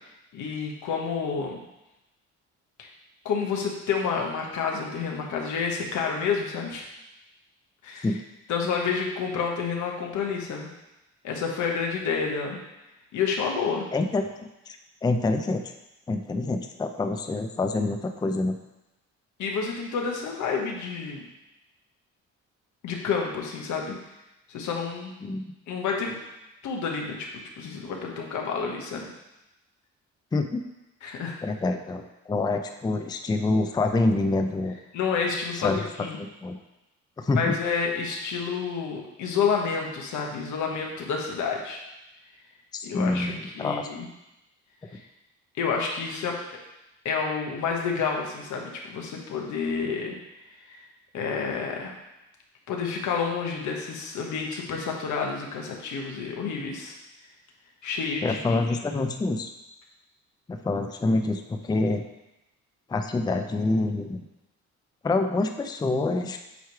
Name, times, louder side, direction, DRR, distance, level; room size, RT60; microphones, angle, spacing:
voice 1, 0.3-1.6 2.8-2.9 3.2-6.8 7.8-8.1 8.5-10.7 11.2-12.6 13.1-13.9 19.4-21.2 22.8-23.9 24.5-25.1 25.7-26.2 26.6-29.1 31.0-31.4 34.9-36.2 37.3-41.8 42.8-44.1 44.9-45.0 45.6-46.4 47.0-50.1 50.7-50.8 51.1-51.9 52.7-56.9 57.8-58.6, left 5 dB, 75° left, 1 dB, 1.2 m, -29 dB
voice 2, 13.9-15.6 16.1-18.6 25.2-25.4 30.3-30.6 31.4-34.7 35.5-35.8 36.2-36.6 37.2-37.6 42.9-43.9 58.2-59.5 60.5-62.0 62.9-64.2 65.0-66.4, left 2 dB, 15° left, 6 dB, 0.4 m, -26 dB
7.9 x 3.1 x 4.7 m, 0.95 s
cardioid pair, 90°, 30 cm